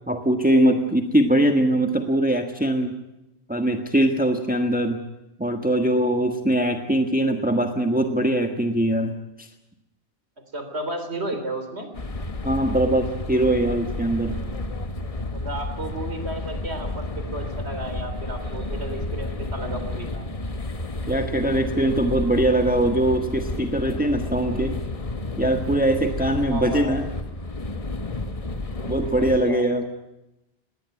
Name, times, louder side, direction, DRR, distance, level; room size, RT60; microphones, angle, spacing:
voice 1, 0.1-3.0 3.5-5.0 5.4-9.5 12.4-14.4 21.1-24.8 25.4-27.0 28.9-29.8, right 1 dB, 10° right, 6 dB, 1.4 m, -22 dB
voice 2, 10.5-11.9 15.3-20.3 26.5-27.0 29.2-29.6, right 1 dB, 80° right, 7 dB, 3.9 m, -33 dB
sound 1, 11.9-29.4, left 2 dB, 35° left, 1.3 m, -31 dB
20.0 x 18.5 x 9.6 m, 0.93 s
omnidirectional pair, 1.1 m